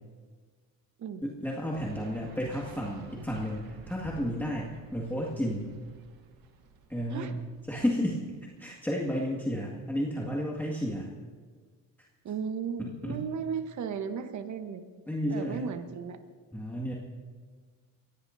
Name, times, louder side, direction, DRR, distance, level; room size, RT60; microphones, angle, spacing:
voice 1, 1.2-5.7 6.9-8.2 8.6-11.1 12.8-13.2 15.1-15.7 16.5-16.9, equal, 5° left, -3 dB, 1.9 m, -32 dB
sound 1, 1.7-8.7, right 5 dB, 80° right, 1.5 m, -52 dB
voice 2, 12.2-14.9 15.3-16.2, right 6 dB, 55° right, 8 dB, 1.2 m, -35 dB
23.5 x 17.0 x 2.7 m, 1.5 s
cardioid pair, 100°, 35 cm